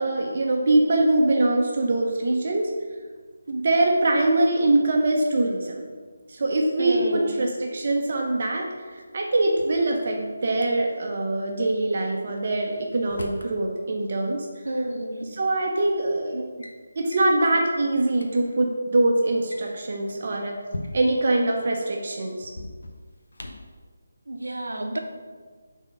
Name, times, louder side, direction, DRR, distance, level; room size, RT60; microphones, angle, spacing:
voice 1, 0.0-2.7 3.5-5.8 6.3-14.5 15.3-16.4 17.0-20.6 20.9-22.5, right 2 dB, 50° right, 1 dB, 0.8 m, -23 dB
voice 2, 6.8-7.4 14.6-15.3 24.3-25.0, right 1 dB, 80° right, 4 dB, 0.8 m, -29 dB
Drawer open or close, 9.3-10.7 12.4-13.5 14.8-14.9 15.7-16.0 16.3-16.8 17.1-17.3 17.8-17.9 18.1-18.3 19.3-21.3 22.4-23.8, left 1 dB, 75° left, 0.8 m, -40 dB
5.2 x 3.7 x 5.3 m, 1.5 s
figure-of-eight pair, 160°, 0 cm